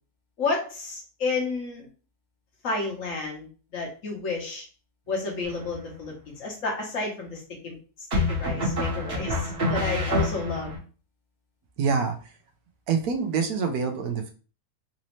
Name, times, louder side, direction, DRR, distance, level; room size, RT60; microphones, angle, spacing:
voice 1, 0.4-1.9 2.6-3.5 3.7-4.6 5.1-7.7 8.2-10.7, left 3 dB, 60° left, -1 dB, 1.4 m, -31 dB
sound 1, 5.4-6.0 8.1-10.8, left 1 dB, 45° right, 1.5 m, -27 dB
voice 2, 11.8-12.2 12.9-14.3, right 5 dB, 75° right, 6 dB, 1.1 m, -25 dB
4.1 x 2.7 x 3.0 m, 0.37 s
omnidirectional pair, 1.6 m